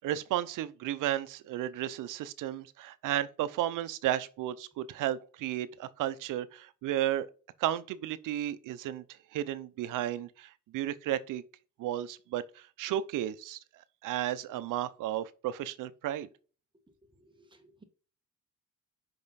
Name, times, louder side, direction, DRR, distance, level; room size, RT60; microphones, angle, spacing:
voice 1, 0.0-7.3 7.6-9.0 9.3-11.4 11.8-13.6 14.0-16.3, right 12 dB, 80° right, 0.7 m, -33 dB
voice 2, 17.2-17.8, right 2 dB, 15° right, 1.4 m, -60 dB
5.7 x 5.4 x 4.0 m
cardioid pair, 110°, 31 cm